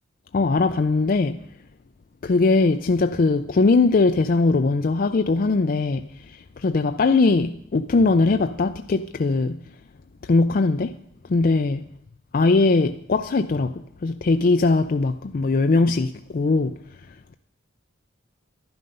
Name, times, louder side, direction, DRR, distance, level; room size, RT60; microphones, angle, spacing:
voice 1, 0.3-1.4 2.2-6.0 6.6-9.5 10.3-10.9 11.3-11.8 12.3-13.7 14.0-16.7, left 3 dB, 45° left, 0.4 m, -20 dB
11.5 x 11.0 x 5.4 m
head